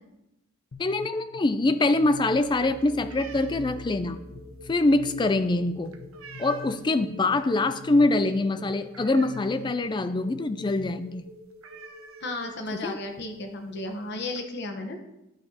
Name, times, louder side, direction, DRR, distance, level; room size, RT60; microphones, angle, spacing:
sound 1, 0.7-10.8, left 5 dB, 80° left, 0.7 m, -44 dB
voice 1, 0.8-4.2 4.7-5.9 6.4-11.2 12.7-13.0, left 2 dB, 20° left, 11 dB, 0.3 m, -24 dB
sound 2, 1.8-13.0, equal, 55° right, 2.6 m, -49 dB
sound 3, 2.3-7.0 7.4-7.7 8.0-8.1 8.5-9.8 10.2-10.3 10.6-10.8 11.1-11.2 11.6-12.8 13.6-13.7 14.0-14.4, right 5 dB, 75° right, 0.7 m, -48 dB
voice 2, 12.2-15.0, left 2 dB, 50° left, 5 dB, 1.0 m, -34 dB
11.5 x 5.5 x 2.8 m, 0.91 s
head